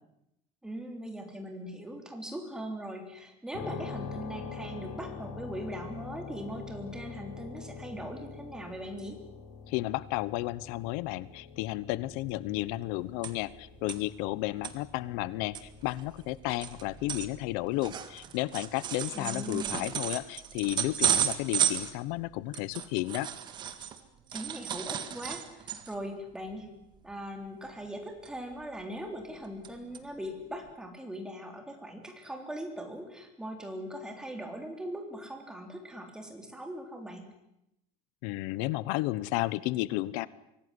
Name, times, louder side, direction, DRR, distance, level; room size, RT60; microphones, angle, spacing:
voice 1, 0.6-9.2 19.1-19.9 24.3-26.7 27.0-37.3, equal, 5° right, 4 dB, 3.4 m, -40 dB
sound 1, 3.5-18.2, left 5 dB, 75° left, 5.1 m, -45 dB
voice 2, 9.7-23.3 38.2-40.3, left 18 dB, 90° left, 19 dB, 1.0 m, -33 dB
sound 2, 12.3-12.4 12.6-13.6 13.9-14.0 14.4-14.7 15.2-15.3 15.5-24.0 24.3-26.1 26.5-26.6 26.9-27.2 28.2-28.8 29.2-29.7 29.9-30.0 30.7-30.8, right 9 dB, 35° right, 1.9 m, -33 dB
24.5 x 17.5 x 9.9 m, 0.83 s
cardioid pair, 180°, 14 cm